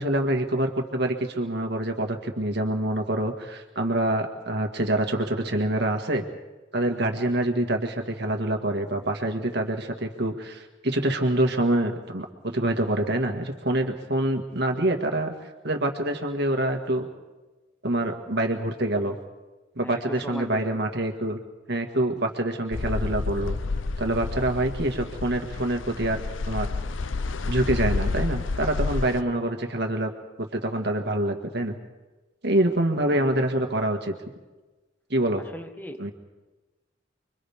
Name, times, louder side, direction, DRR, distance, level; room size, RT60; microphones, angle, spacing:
voice 1, 0.0-6.3 6.7-17.1 17.8-19.2 19.8-21.4 21.7-23.6 24.0-26.2 26.5-26.7 27.5-30.1 30.4-31.7 32.4-34.1 35.1-35.4 36.0-36.1, right 1 dB, 60° right, 4 dB, 1.9 m, -26 dB
voice 2, 19.8-20.8 33.1-33.3 35.4-36.1, equal, 10° left, 8 dB, 1.1 m, -38 dB
sound 1, 22.7-29.2, left 3 dB, 80° left, 0.7 m, -29 dB
30.0 x 24.0 x 3.6 m, 1.2 s
head